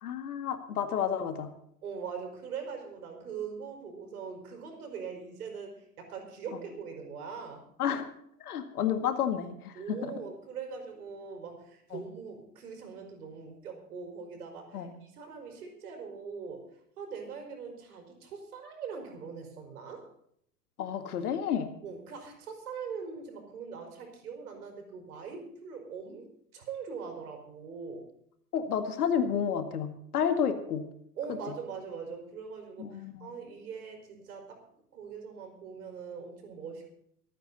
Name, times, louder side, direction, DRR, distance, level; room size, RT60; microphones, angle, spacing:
voice 1, 0.0-1.5 7.8-8.1 8.4-10.1 11.9-12.0 14.7-14.9 20.8-21.7 28.5-30.8 32.8-33.3, left 8 dB, 70° left, 7 dB, 2.1 m, -30 dB
voice 2, 1.8-7.6 9.7-20.1 21.8-26.3 26.5-28.1 31.2-34.6 34.9-36.9, right 6 dB, 70° right, 4 dB, 5.0 m, -42 dB
25.5 x 9.2 x 4.1 m, 0.71 s
hypercardioid pair, 100°, 47 cm